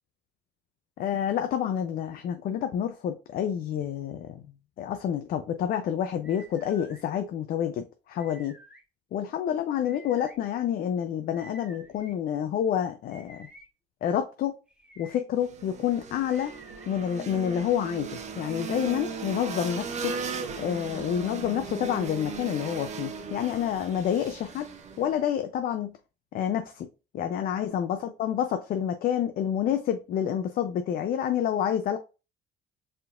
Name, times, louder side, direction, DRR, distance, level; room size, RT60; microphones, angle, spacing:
voice 1, 1.0-4.4 4.8-8.5 9.1-13.5 14.0-14.5 15.0-16.5 16.9-20.2 20.6-24.7 25.0-26.0 26.3-26.9 27.1-32.0, left 9 dB, 60° left, 0.5 m, -28 dB
sound 1, 6.2-7.0 8.2-8.8 9.8-10.3 11.3-12.1 13.1-13.7 14.7-15.2 16.3-16.9, right 1 dB, 5° right, 1.8 m, -51 dB
sound 2, 15.3-25.2, right 5 dB, 45° right, 0.8 m, -37 dB
4.6 x 3.7 x 2.4 m
cardioid pair, 110°, 17 cm